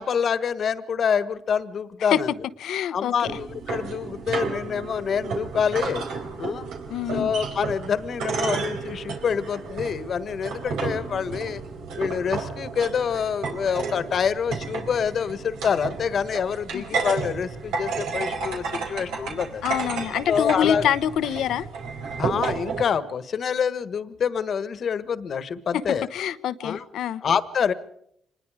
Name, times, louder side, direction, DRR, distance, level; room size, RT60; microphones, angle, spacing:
voice 1, 0.0-2.3 2.9-6.0 6.4-6.7 7.1-11.6 12.0-19.6 20.3-20.9 22.2-26.1 26.6-26.8 27.2-27.7, left 7 dB, 55° left, 14 dB, 1.5 m, -26 dB
voice 2, 2.6-3.1 6.9-7.3 16.7-16.8 19.6-21.7 25.7-25.8 26.1-27.2, left 10 dB, 75° left, 14 dB, 0.9 m, -25 dB
sound 1, 3.2-22.8, right 5 dB, 85° right, 4.3 m, -32 dB
26.0 x 20.5 x 5.0 m, 0.72 s
cardioid pair, 90°, 0 cm